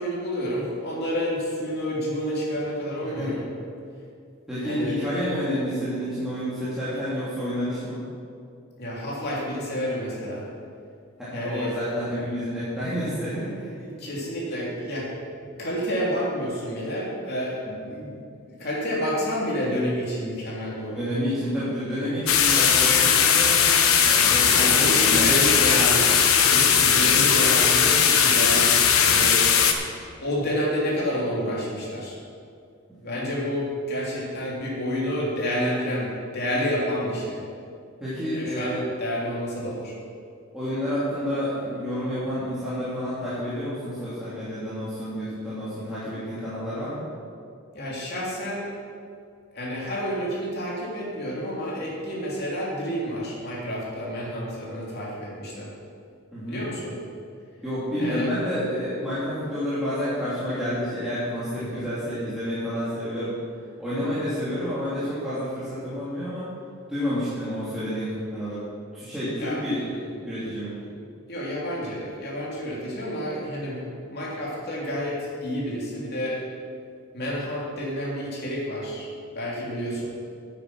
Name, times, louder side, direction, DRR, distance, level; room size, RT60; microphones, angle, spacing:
voice 1, 0.0-3.4 4.6-5.0 8.8-10.5 11.3-11.8 13.8-15.1 15.6-17.6 17.9-18.1 18.5-21.1 24.4-26.1 26.4-29.4 30.2-32.2 33.0-37.4 38.3-39.9 47.7-48.6 49.5-55.7 56.5-56.9 58.0-58.3 61.7-61.9 69.4-69.6 71.3-76.4 77.1-79.1 79.3-80.0, equal, 50° left, -5 dB, 3.2 m, -29 dB
voice 2, 4.5-8.0 11.2-13.8 17.6-17.9 20.9-23.6 24.1-25.5 26.8-27.1 33.0-33.2 38.0-38.8 40.5-47.0 56.3-56.7 57.6-63.4 63.8-66.5 66.9-68.6 68.9-70.8, equal, ahead, -13 dB, 2.8 m, -29 dB
sound 1, 22.3-29.7, left 7 dB, 80° left, 1.0 m, -18 dB
9.9 x 9.0 x 6.1 m, 2.4 s
head